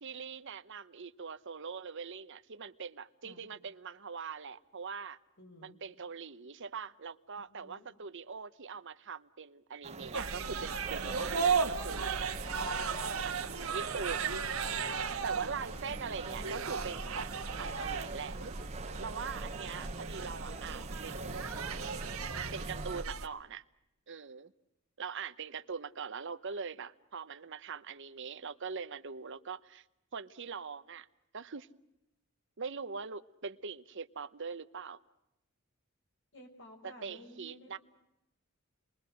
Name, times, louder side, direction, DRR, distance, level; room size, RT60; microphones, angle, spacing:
voice 1, 0.0-5.2 5.6-13.0 13.2-14.4 15.2-18.4 19.0-21.5 22.5-23.6 24.1-24.5 25.0-29.8 30.1-31.1 31.3-31.7 32.6-35.0 36.8-37.8, right 5 dB, 60° right, 12 dB, 0.9 m, -42 dB
voice 2, 5.4-5.8 7.4-7.9 12.6-13.3 15.7-15.9 36.3-37.8, equal, 60° left, 3 dB, 5.4 m, -55 dB
sound 1, 9.8-23.0, right 3 dB, 30° right, 1.0 m, -44 dB
sound 2, 10.1-23.3, right 5 dB, 85° right, 1.6 m, -36 dB
29.5 x 22.0 x 6.4 m, 0.88 s
head